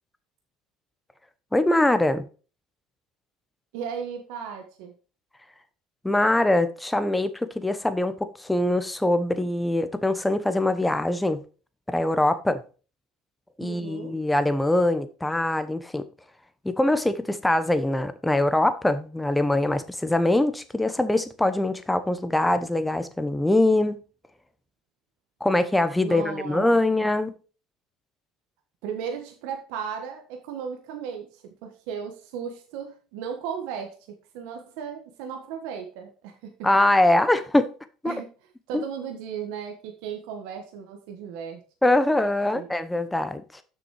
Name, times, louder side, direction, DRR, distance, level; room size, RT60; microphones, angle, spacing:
voice 1, 1.5-2.3 6.0-11.4 11.9-12.6 13.6-16.1 16.6-24.0 25.4-27.3 36.6-37.7 38.0-38.1 38.7-38.8 41.8-43.6, left 1 dB, 5° left, 0.9 m, -23 dB
voice 2, 3.7-4.9 13.6-14.2 26.0-26.7 28.8-34.0 34.3-36.5 38.0-38.3 38.7-41.6 42.5-42.7, right 7 dB, 80° right, 1.4 m, -35 dB
7.0 x 6.2 x 4.8 m
supercardioid pair, 110°, 0 cm